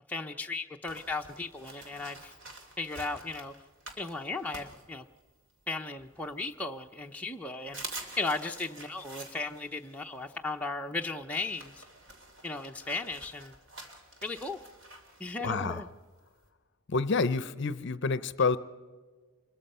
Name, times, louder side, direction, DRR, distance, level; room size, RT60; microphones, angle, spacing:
voice 1, 0.1-2.3 2.8-3.5 4.0-5.1 5.7-7.8 8.2-11.8 12.4-13.5 14.2-14.6 15.2-15.9, left 3 dB, 5° left, 1 dB, 0.6 m, -36 dB
sound 1, 0.9-5.5 6.0-6.9 7.3-7.4 7.6-16.5, right 2 dB, 55° right, 2.9 m, -48 dB
voice 2, 15.4-15.8 16.9-18.6, left 4 dB, 50° left, 15 dB, 0.6 m, -28 dB
25.5 x 22.0 x 5.5 m, 1.4 s
head